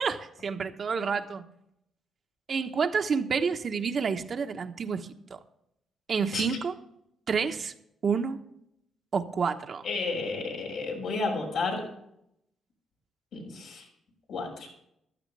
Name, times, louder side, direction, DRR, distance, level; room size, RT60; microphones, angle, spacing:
voice 1, 0.0-1.5 2.5-5.4 6.1-6.7 7.3-7.7 8.0-8.4 9.1-9.9, right 5 dB, 45° right, 1.1 m, -29 dB
voice 2, 9.8-11.9 13.3-13.8 14.3-14.7, left 3 dB, 80° left, 6.0 m, -32 dB
15.0 x 13.0 x 3.4 m
cardioid pair, 90°, 0 cm